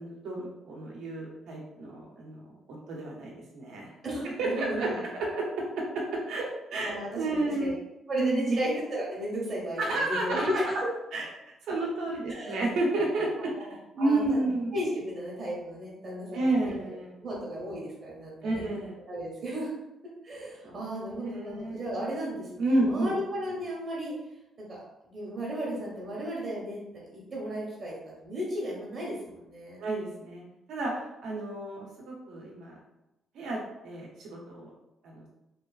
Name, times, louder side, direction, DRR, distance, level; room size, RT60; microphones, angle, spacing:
voice 1, 0.0-3.9 4.2-7.8 8.2-8.6 9.8-10.6 11.1-11.3 11.6-14.7 16.3-17.3 18.4-19.0 20.6-20.8 21.2-21.8 22.6-23.1 29.8-32.8 33.3-34.7 35.0-35.3, right 2 dB, 80° right, -2 dB, 0.7 m, -31 dB
voice 2, 4.0-5.0 6.8-7.8 8.1-10.7 12.3-12.6 13.5-14.5 14.7-16.5 16.9-18.7 19.1-19.7 20.2-24.1 24.6-24.8 25.0-29.8, equal, 50° right, -5 dB, 0.9 m, -34 dB
3.0 x 2.3 x 2.3 m, 0.90 s
cardioid pair, 100°, 0 cm